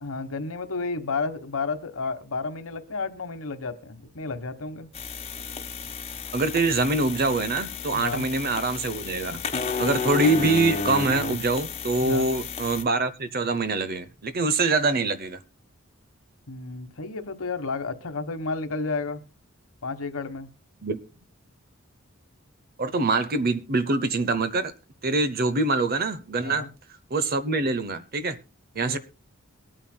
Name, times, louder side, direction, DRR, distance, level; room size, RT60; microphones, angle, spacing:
voice 1, 0.0-4.9 7.9-8.3 12.0-12.3 16.5-19.2 19.8-20.5 26.4-26.7 28.8-29.0, left 4 dB, 80° left, 1.3 m, -32 dB
sound 1, 4.9-12.8, left 5 dB, 30° left, 1.3 m, -32 dB
voice 2, 6.3-9.4 9.8-15.4 20.8-21.0 22.8-24.7 25.0-26.7 27.1-28.4 28.8-29.0, right 3 dB, 45° right, 0.8 m, -24 dB
22.5 x 9.1 x 2.2 m
head